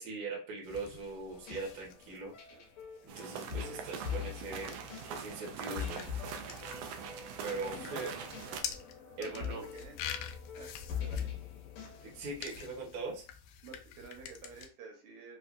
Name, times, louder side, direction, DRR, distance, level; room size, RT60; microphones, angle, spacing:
voice 1, 0.0-2.4 3.0-4.8 5.1-6.1 7.4-8.2 9.2-9.7 12.0-13.3, right 3 dB, 50° right, -2 dB, 1.0 m, -41 dB
sound 1, 0.6-14.7, left 9 dB, 85° left, 2.0 m, -48 dB
sound 2, 1.3-12.9, left 8 dB, 65° left, 2.0 m, -43 dB
sound 3, 3.1-8.6, right 7 dB, 90° right, 1.4 m, -43 dB
voice 2, 9.2-9.9 10.5-10.7 11.0-11.3 13.6-15.4, right 5 dB, 70° right, 2 dB, 2.2 m, -51 dB
5.2 x 2.3 x 2.5 m, 0.35 s
omnidirectional pair, 3.5 m